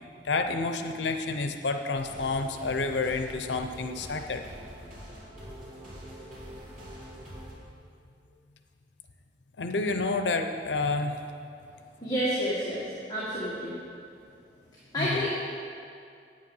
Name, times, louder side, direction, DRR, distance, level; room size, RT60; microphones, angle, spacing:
voice 1, 0.2-4.4 9.6-11.2 15.0-15.3, left 3 dB, 85° left, 7 dB, 0.7 m, -29 dB
sound 1, 1.9-7.5, equal, 50° right, 3.0 m, -45 dB
voice 2, 12.0-13.8 14.9-15.5, equal, 20° left, -8 dB, 1.6 m, -29 dB
9.6 x 8.8 x 5.5 m, 2.4 s
head